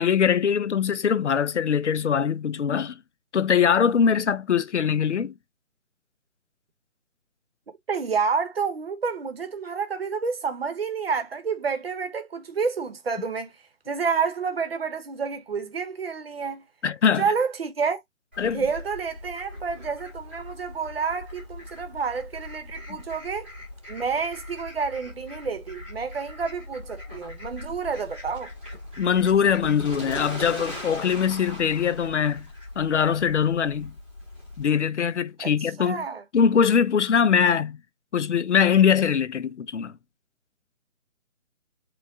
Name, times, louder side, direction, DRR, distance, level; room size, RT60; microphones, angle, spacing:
voice 1, 0.0-3.0 3.3-5.3 16.8-17.2 18.4-18.6 29.0-32.5 32.8-33.9 34.6-36.0 36.3-37.8 38.1-39.9, left 7 dB, 60° left, 0.6 m, -22 dB
voice 2, 7.9-13.5 13.9-16.6 17.2-18.0 18.5-23.5 23.9-28.5 35.4-35.5 35.8-36.2, right 5 dB, 45° right, 1.0 m, -29 dB
Fowl, 18.3-34.6, left 1 dB, 10° right, 0.9 m, -40 dB
4.6 x 2.4 x 3.6 m
hypercardioid pair, 170°, 41 cm